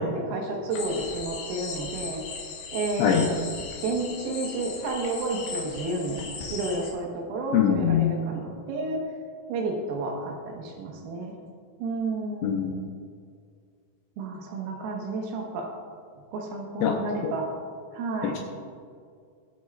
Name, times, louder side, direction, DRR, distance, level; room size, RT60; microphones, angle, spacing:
voice 1, 0.0-2.2 2.7-3.4 3.8-6.2 6.5-9.0 9.5-11.4 11.8-12.7 14.2-15.7 16.3-17.5 17.9-18.4, right 2 dB, 85° right, 0 dB, 4.1 m, -31 dB
sound 1, 0.7-6.9, left 5 dB, 65° left, 3.2 m, -38 dB
voice 2, 7.5-8.1 12.4-12.8 16.8-17.0 17.2-17.3 18.2-18.4, left 9 dB, 85° left, 1 dB, 2.7 m, -23 dB
21.5 x 8.0 x 2.5 m, 2.2 s
omnidirectional pair, 6.0 m